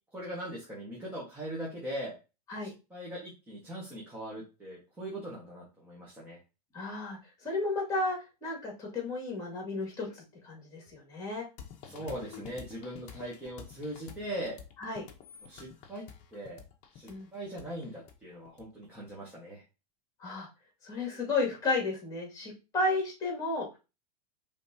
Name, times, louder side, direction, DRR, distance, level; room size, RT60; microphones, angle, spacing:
voice 1, 0.1-2.1 2.6-6.4 11.9-14.6 15.5-16.0 16.3-16.6 16.9-19.6, right 1 dB, 10° right, -6 dB, 1.3 m, -40 dB
voice 2, 6.7-11.5 14.8-15.0 17.1-17.3 20.2-20.5 20.8-23.7, left 3 dB, 15° left, -1 dB, 2.2 m, -33 dB
sound 1, 11.6-19.1, left 7 dB, 35° left, 0.8 m, -49 dB
5.2 x 3.5 x 2.7 m, 0.29 s
supercardioid pair, 160°, 21 cm